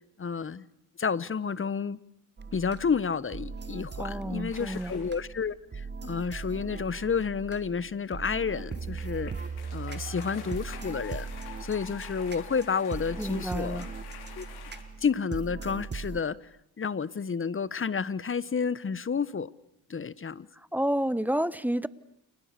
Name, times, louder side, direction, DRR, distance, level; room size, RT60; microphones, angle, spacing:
voice 1, 0.2-0.6 1.0-2.0 2.5-9.5 9.7-11.3 11.6-13.9 14.4-14.5 15.0-16.4 16.8-19.5 19.9-20.5, left 6 dB, 35° left, 1.2 m, -30 dB
sound 1, 2.4-16.2, right 5 dB, 30° right, 1.4 m, -39 dB
voice 2, 4.0-4.9 13.2-13.9 20.7-21.9, right 1 dB, 5° right, 1.1 m, -29 dB
sound 2, 4.5-5.2 8.6-14.8, left 7 dB, 85° left, 6.0 m, -47 dB
29.5 x 28.5 x 6.8 m
cardioid pair, 75°, 38 cm